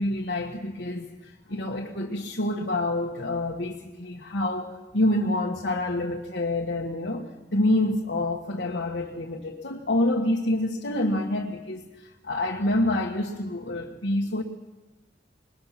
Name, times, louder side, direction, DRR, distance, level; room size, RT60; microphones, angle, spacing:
voice 1, 0.0-14.4, left 1 dB, 85° left, -1 dB, 1.6 m, -27 dB
21.5 x 21.0 x 5.9 m, 1.1 s
head